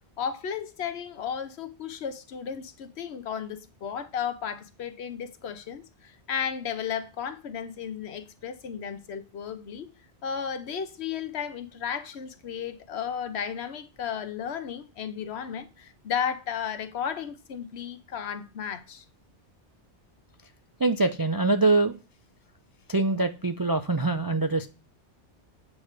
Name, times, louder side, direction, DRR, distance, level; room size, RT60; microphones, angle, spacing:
voice 1, 0.2-9.9 10.2-19.0, left 7 dB, 70° left, 1.0 m, -34 dB
voice 2, 20.8-22.0 22.9-24.7, right 3 dB, 35° right, 0.3 m, -24 dB
8.3 x 3.2 x 6.5 m
omnidirectional pair, 1.2 m